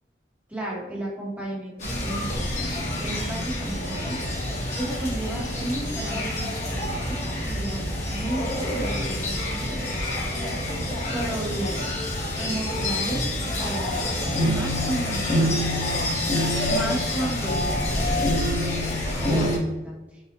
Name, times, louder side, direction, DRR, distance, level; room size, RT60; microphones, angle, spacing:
voice 1, 0.5-4.2 4.8-7.2 7.5-10.0 11.1-11.8 12.4-13.2 13.6-18.9 19.1-19.5 19.8-20.2, right 1 dB, 10° right, -4 dB, 1.0 m, -33 dB
sound 1, 1.8-19.6, left 1 dB, 40° left, 1.1 m, -27 dB
4.9 x 2.3 x 2.9 m, 1.1 s
head